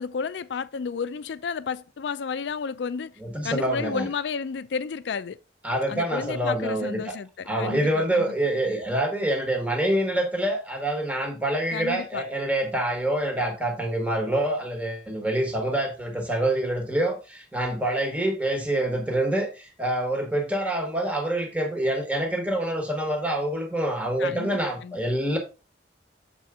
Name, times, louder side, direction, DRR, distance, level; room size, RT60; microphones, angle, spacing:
voice 1, 0.0-3.1 3.4-5.4 5.9-8.3 11.7-12.2 24.2-24.5 24.8-25.0, left 5 dB, 75° left, 0.4 m, -32 dB
voice 2, 3.2-4.1 5.6-7.1 7.5-25.4, right 1 dB, 10° right, 1.2 m, -26 dB
6.9 x 4.2 x 3.6 m
head